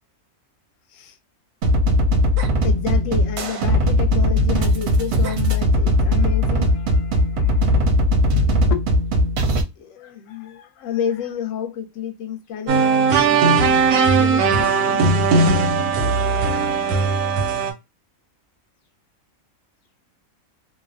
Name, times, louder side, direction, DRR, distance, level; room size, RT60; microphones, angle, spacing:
sound 1, 1.6-9.6, left 1 dB, 65° right, 0.7 m, -19 dB
voice 1, 2.6-7.9 8.7-8.9 9.1-9.5 9.8-15.7 16.5-16.6, left 8 dB, 70° left, 0.9 m, -31 dB
sound 2, 12.7-17.7, right 4 dB, 85° right, 1.1 m, -18 dB
2.6 x 2.0 x 2.5 m
omnidirectional pair, 1.5 m